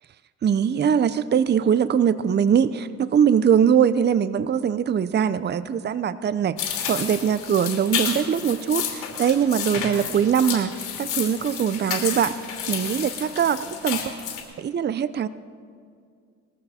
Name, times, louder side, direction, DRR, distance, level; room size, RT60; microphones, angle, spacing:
voice 1, 0.4-12.3 12.7-14.1 14.6-15.3, right 8 dB, 35° right, 14 dB, 0.6 m, -22 dB
sound 1, 6.6-14.4, left 8 dB, 85° left, 2.8 m, -31 dB
20.5 x 14.5 x 4.2 m, 2.2 s
cardioid pair, 90°, 30 cm